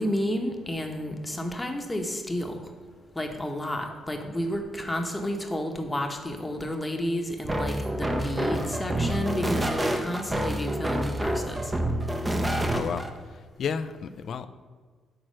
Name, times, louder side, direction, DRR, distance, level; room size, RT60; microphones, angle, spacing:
voice 1, 0.0-2.6 3.1-11.7, left 1 dB, 15° left, 4 dB, 1.0 m, -31 dB
sound 1, 7.4-13.1, right 1 dB, 15° right, 0.7 m, -28 dB
voice 2, 12.7-14.5, left 6 dB, 60° left, 12 dB, 0.4 m, -33 dB
6.3 x 4.4 x 6.3 m, 1.5 s
cardioid pair, 90°, 0 cm